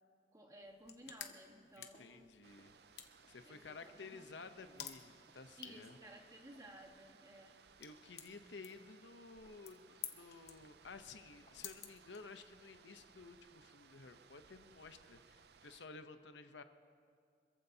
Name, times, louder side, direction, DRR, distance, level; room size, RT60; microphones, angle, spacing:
voice 1, 0.3-2.3 3.4-4.5 5.6-7.6, right 1 dB, 20° right, 2 dB, 1.4 m, -57 dB
sound 1, 0.6-12.7, left 9 dB, 65° left, 1.0 m, -55 dB
sound 2, 1.3-6.2 6.6-8.4 8.7-9.1 9.5-12.3, left 1 dB, 40° left, 1.6 m, -73 dB
voice 2, 1.8-2.8 3.3-6.0 7.8-16.6, left 4 dB, 85° left, 9 dB, 0.8 m, -54 dB
sound 3, 2.4-15.9, right 6 dB, 65° right, 0.5 m, -64 dB
26.0 x 14.5 x 2.8 m, 2.3 s
head